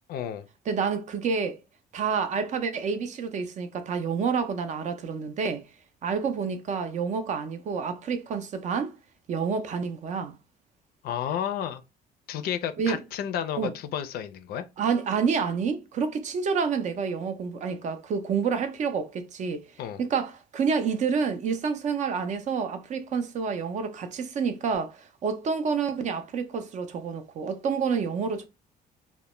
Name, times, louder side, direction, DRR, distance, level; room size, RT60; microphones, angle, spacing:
voice 1, 0.1-0.5 11.0-11.8 12.3-14.6 19.8-20.0, left 9 dB, 65° left, 0.4 m, -31 dB
voice 2, 0.7-1.6 1.9-5.7 6.0-9.0 9.3-10.4 12.8-13.0 13.6-13.7 14.8-19.6 20.0-28.5, right 6 dB, 45° right, 0.4 m, -28 dB
2.1 x 2.1 x 2.9 m
cardioid pair, 110°, 17 cm